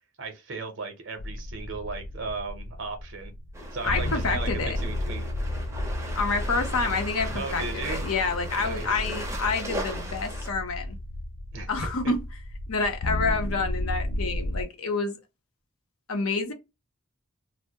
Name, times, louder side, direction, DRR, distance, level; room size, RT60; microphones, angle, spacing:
voice 1, 0.2-3.3 3.7-5.3 7.3-8.0 8.6-9.0 11.5-11.7 12.0-12.1, right 4 dB, 60° right, 0.6 m, -36 dB
sound 1, 1.2-14.7, left 1 dB, 55° left, 0.3 m, -33 dB
sound 2, 3.5-10.5, right 1 dB, 15° right, 0.5 m, -38 dB
voice 2, 3.8-4.8 6.2-11.0 11.7-12.2 12.7-15.2 16.1-16.5, left 4 dB, 90° left, 0.7 m, -28 dB
2.2 x 2.0 x 2.7 m
head